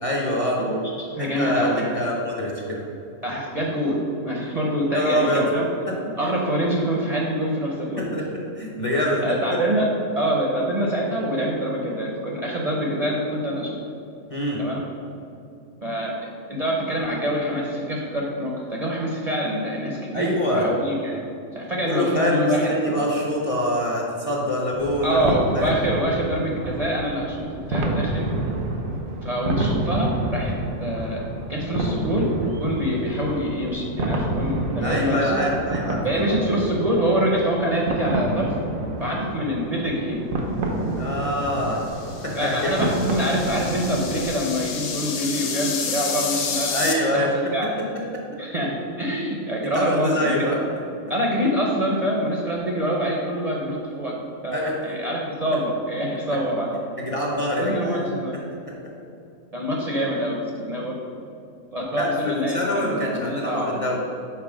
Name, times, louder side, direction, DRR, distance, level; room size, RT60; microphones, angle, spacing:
voice 1, 0.0-0.6 1.2-2.8 4.9-5.5 5.9-6.1 8.0-9.4 14.3-14.6 20.1-20.7 21.8-25.7 34.8-36.6 40.9-41.9 42.2-42.7 46.7-47.3 48.1-48.4 49.6-50.6 54.5-54.8 55.5-55.6 56.3-56.4 57.0-58.1 62.0-64.0, left 1 dB, 30° left, -3 dB, 0.7 m, -25 dB
voice 2, 0.6-1.9 3.2-4.0 4.2-5.7 6.2-8.1 9.2-9.9 10.1-13.8 14.6-14.8 15.8-21.2 21.5-23.0 25.0-28.2 29.2-30.5 30.8-31.2 31.5-35.4 36.0-38.6 39.0-40.2 40.7-40.9 42.3-47.7 48.4-50.4 51.1-54.2 54.4-54.6 54.8-56.7 57.6-58.4 59.5-60.4 60.7-61.0 61.7-63.9, equal, 40° right, -3 dB, 0.6 m, -25 dB
sound 1, 24.7-44.4, right 2 dB, 85° right, 1.2 m, -29 dB
sound 2, 41.8-46.9, left 5 dB, 75° left, 1.1 m, -30 dB
6.0 x 4.1 x 4.9 m, 2.6 s
omnidirectional pair, 1.4 m